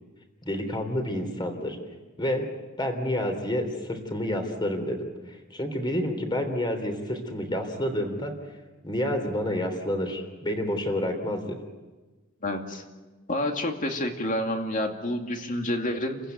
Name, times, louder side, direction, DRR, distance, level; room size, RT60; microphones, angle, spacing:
voice 1, 0.4-1.8 2.2-2.5 2.8-5.0 5.3-8.3 8.8-11.6, left 1 dB, 25° left, 6 dB, 3.6 m, -29 dB
voice 2, 12.4-12.8 13.3-16.2, left 1 dB, 40° left, 4 dB, 2.5 m, -29 dB
29.5 x 15.5 x 9.3 m, 1.3 s
head